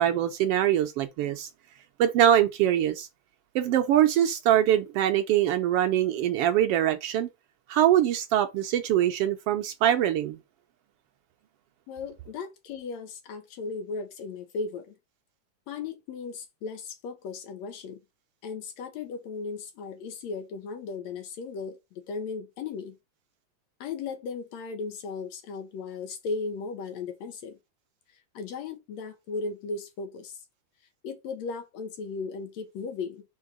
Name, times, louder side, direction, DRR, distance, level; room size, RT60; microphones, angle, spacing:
voice 1, 0.0-1.5 2.0-3.1 3.5-7.3 7.7-10.4, right 11 dB, 80° right, 1.3 m, -23 dB
voice 2, 11.9-15.0 15.7-18.0 18.4-23.0 23.8-27.6 28.4-30.4 31.0-33.2, left 4 dB, 70° left, 2.1 m, -36 dB
4.7 x 4.3 x 4.8 m
omnidirectional pair, 3.4 m